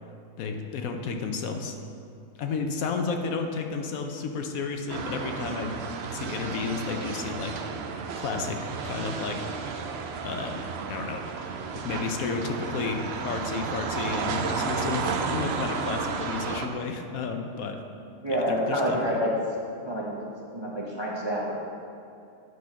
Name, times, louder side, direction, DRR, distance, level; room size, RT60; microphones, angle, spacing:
voice 1, 0.4-1.8 2.4-5.8 6.1-7.6 8.2-9.4 10.2-11.2 11.7-17.8 18.3-19.2, left 5 dB, 75° left, 4 dB, 1.1 m, -32 dB
sound 1, 4.9-16.7, right 5 dB, 60° right, 0.7 m, -32 dB
voice 2, 18.2-19.3 19.8-20.2 20.5-21.6, equal, 25° right, -4 dB, 0.7 m, -28 dB
9.3 x 4.1 x 5.8 m, 2.5 s
omnidirectional pair, 1.5 m